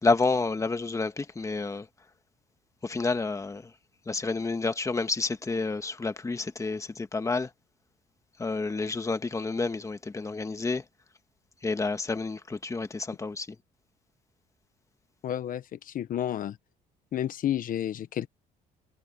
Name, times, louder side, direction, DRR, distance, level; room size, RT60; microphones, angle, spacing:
voice 1, 0.0-1.9 2.8-3.7 4.1-7.5 8.4-10.8 11.6-13.5, left 3 dB, 20° left, 1.6 m, -29 dB
voice 2, 15.2-16.6 17.1-18.3, left 11 dB, 55° left, 1.2 m, -31 dB
cardioid pair, 110°, 17 cm